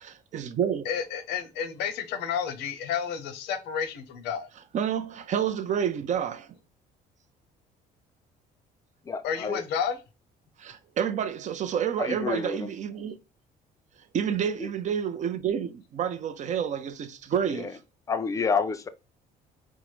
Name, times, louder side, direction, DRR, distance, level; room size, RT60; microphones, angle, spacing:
voice 1, 0.0-0.9 4.7-6.5 10.6-13.2 14.1-17.8, right 8 dB, 45° right, 0.4 m, -29 dB
voice 2, 0.9-4.5 9.2-10.0, left 7 dB, 85° left, 0.7 m, -31 dB
voice 3, 9.1-9.6 12.0-12.7 17.5-17.7 18.1-18.9, left 5 dB, 20° left, 0.4 m, -29 dB
4.5 x 2.0 x 3.0 m
cardioid pair, 110°, 17 cm